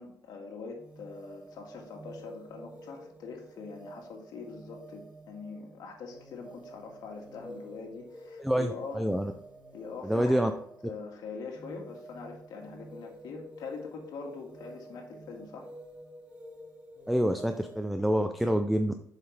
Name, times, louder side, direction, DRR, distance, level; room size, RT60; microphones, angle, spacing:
voice 1, 0.0-9.0 9.7-10.5 10.8-15.7, left 4 dB, 75° left, 1 dB, 1.9 m, -43 dB
sound 1, 0.8-17.9, right 1 dB, 15° right, 1.4 m, -50 dB
voice 2, 8.4-9.3 10.0-10.5 17.1-18.9, equal, ahead, 7 dB, 0.4 m, -27 dB
7.7 x 5.8 x 3.3 m, 0.70 s
cardioid pair, 140°, 7 cm